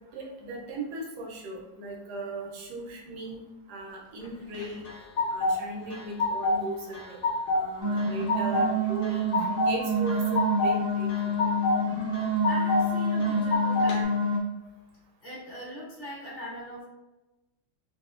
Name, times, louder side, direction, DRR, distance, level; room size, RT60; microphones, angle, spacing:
voice 1, 0.1-3.4 3.7-4.8 5.3-7.2 7.5-9.3 9.6-11.3, right 2 dB, 70° right, 0 dB, 1.2 m, -38 dB
sound 1, 4.5-5.6 5.9-6.6 6.9-7.6 8.0-8.7 9.0-9.7 10.1-10.7 11.1-11.8 12.1-12.8 13.2-14.0, left 2 dB, 70° left, 0.7 m, -26 dB
sound 2, 7.8-14.4, equal, 45° right, 0.9 m, -27 dB
voice 2, 12.5-14.1 15.2-16.8, equal, 35° left, -5 dB, 0.9 m, -40 dB
2.9 x 2.7 x 2.4 m, 1.0 s
omnidirectional pair, 1.9 m